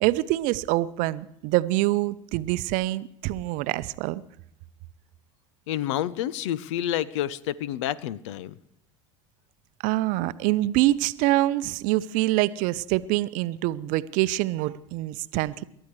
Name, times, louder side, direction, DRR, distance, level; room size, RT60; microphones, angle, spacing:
voice 1, 0.0-4.2 9.8-15.6, right 17 dB, 55° right, 16 dB, 0.6 m, -25 dB
voice 2, 5.7-8.5, left 12 dB, 70° left, 20 dB, 0.7 m, -29 dB
28.0 x 13.0 x 3.2 m, 0.73 s
hypercardioid pair, 75°, 16 cm